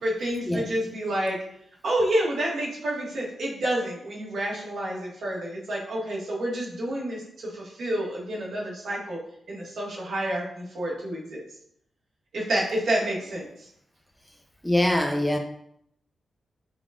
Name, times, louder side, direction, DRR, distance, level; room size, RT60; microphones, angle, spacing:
voice 1, 0.0-1.4 1.8-9.2 9.5-11.4 12.3-13.7, right 1 dB, 80° right, -5 dB, 1.4 m, -29 dB
voice 2, 14.6-15.4, left 1 dB, 5° left, 3 dB, 0.5 m, -23 dB
5.0 x 2.3 x 3.6 m, 0.71 s
wide cardioid pair, 110°, 0 cm